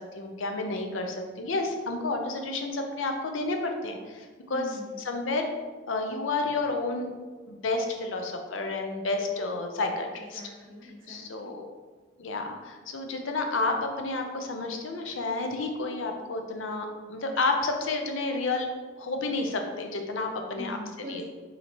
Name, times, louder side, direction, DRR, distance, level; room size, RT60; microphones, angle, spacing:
voice 1, 0.0-4.7 5.0-5.5 5.9-7.1 7.5-10.4 10.8-11.7 12.2-18.7 19.0-20.8 21.1-21.2, left 3 dB, 75° left, 4 dB, 0.6 m, -30 dB
voice 2, 4.5-5.0 10.1-11.5 20.6-21.2, left 1 dB, 45° right, -5 dB, 1.3 m, -42 dB
5.5 x 2.8 x 3.0 m, 1.4 s
head